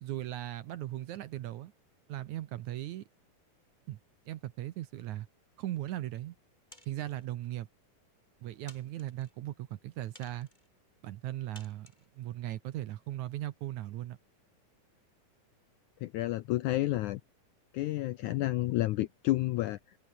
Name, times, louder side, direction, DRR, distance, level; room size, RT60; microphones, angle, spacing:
voice 1, 0.0-1.7 2.1-3.1 3.9-4.0 4.3-5.3 5.6-6.4 6.9-7.7 8.4-10.5 11.0-11.9 12.2-14.2, right 14 dB, 70° right, 2.0 m, -38 dB
sound 1, 6.7-7.3 8.0-8.1 8.7-9.3 10.1-10.7 11.5-12.1, left 1 dB, 10° left, 6.9 m, -56 dB
voice 2, 16.0-17.2 17.7-20.0, left 16 dB, 80° left, 1.8 m, -30 dB
open air
omnidirectional pair, 4.2 m